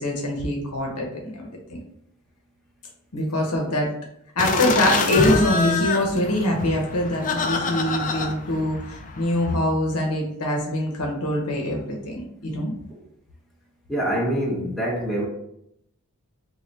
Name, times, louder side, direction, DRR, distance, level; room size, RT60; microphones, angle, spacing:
voice 1, 0.0-1.4 3.1-3.9 4.4-12.7, left 1 dB, 85° left, 0.8 m, -24 dB
sound 1, 4.4-9.6, left 3 dB, 35° left, 0.4 m, -26 dB
voice 2, 13.9-15.3, equal, ahead, 0.7 m, -25 dB
3.3 x 2.3 x 3.9 m
head